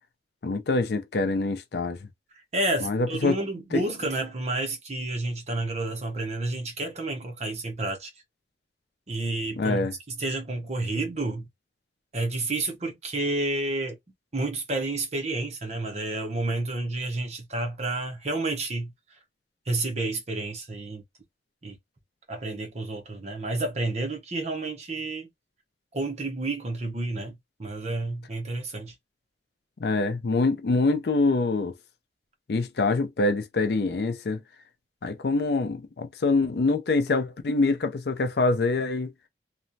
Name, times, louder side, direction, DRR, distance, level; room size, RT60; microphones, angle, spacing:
voice 1, 0.4-2.0 2.8-3.4 3.7-3.8 9.6-9.9 29.8-31.7 32.5-34.4 35.0-39.1, left 3 dB, 60° left, 0.4 m, -25 dB
voice 2, 2.3-8.1 9.1-9.9 10.2-11.5 12.1-14.0 14.3-18.9 19.7-21.0 21.6-21.8 22.3-25.3 25.9-28.9, right 2 dB, 40° right, 0.8 m, -30 dB
3.0 x 2.2 x 2.6 m
head